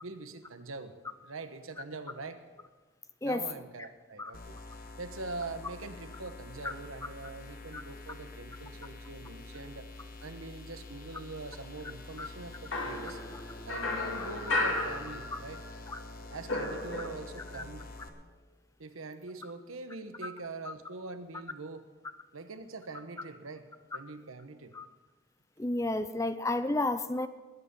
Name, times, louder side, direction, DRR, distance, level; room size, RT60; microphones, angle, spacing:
voice 1, 0.0-0.9 1.2-2.4 3.2-4.6 5.0-9.9 10.2-13.2 13.7-15.6 16.3-17.8 18.8-21.9 22.3-24.7, right 3 dB, 85° right, 8 dB, 1.2 m, -43 dB
sound 1, 4.3-18.1, left 2 dB, 45° left, 1.4 m, -47 dB
sound 2, 12.7-15.7 16.0-17.5, left 2 dB, 70° left, 2.4 m, -34 dB
voice 2, 25.6-27.3, left 2 dB, 15° left, 11 dB, 0.5 m, -31 dB
20.5 x 9.0 x 5.5 m, 1.3 s
head